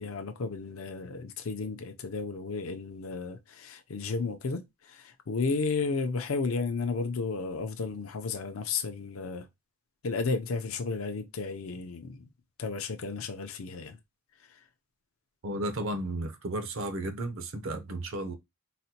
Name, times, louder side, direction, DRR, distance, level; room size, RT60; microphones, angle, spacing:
voice 1, 0.0-9.5 10.0-12.3 12.6-14.0 14.4-14.6, left 4 dB, 80° left, 0.5 m, -33 dB
voice 2, 15.4-18.3, right 1 dB, 70° right, 0.7 m, -33 dB
4.1 x 2.1 x 2.8 m
head